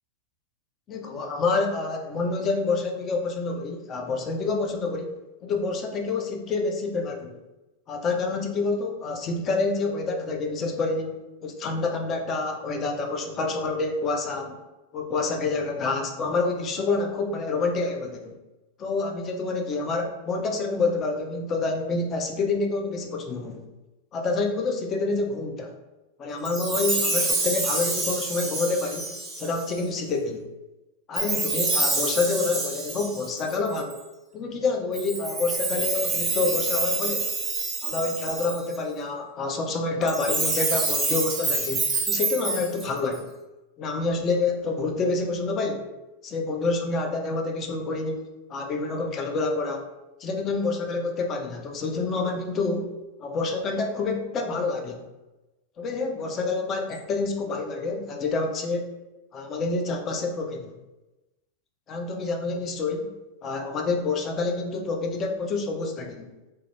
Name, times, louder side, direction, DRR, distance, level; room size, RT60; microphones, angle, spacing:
voice 1, 0.9-5.1 5.4-7.4 7.9-14.6 14.9-18.4 18.8-23.6 24.1-25.7 26.2-29.1 29.4-30.4 31.1-34.0 34.3-37.3 37.8-43.3 43.8-45.9 46.2-48.2 48.5-49.9 50.2-52.9 53.2-55.1 55.8-58.8 59.3-60.7 61.9-63.1 63.4-66.3, left 3 dB, 30° left, 3 dB, 0.4 m, -27 dB
Chime, 26.4-29.8 31.1-34.0 34.9-38.8 40.0-43.2, right 3 dB, 15° right, 0.6 m, -27 dB
2.3 x 2.1 x 3.1 m, 1.0 s
figure-of-eight pair, 90°, 0 cm